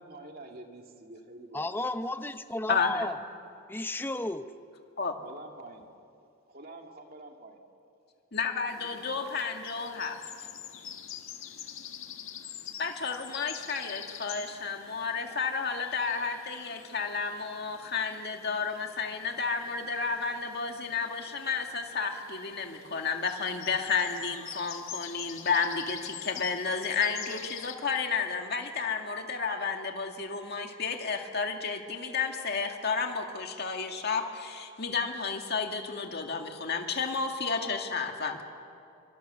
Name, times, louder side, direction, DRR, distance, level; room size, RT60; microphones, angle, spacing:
voice 1, 0.0-1.7 5.2-5.9 6.5-7.6, right 2 dB, 45° right, 2 dB, 2.4 m, -47 dB
voice 2, 1.5-3.2 3.7-4.5, left 2 dB, 10° left, 9 dB, 0.7 m, -33 dB
voice 3, 2.7-3.1 5.0-5.1 8.3-10.2 12.8-38.4, left 5 dB, 50° left, 3 dB, 2.1 m, -32 dB
sound 1, 8.7-27.7, left 9 dB, 70° left, 1.8 m, -46 dB
27.0 x 25.0 x 7.0 m, 2.6 s
head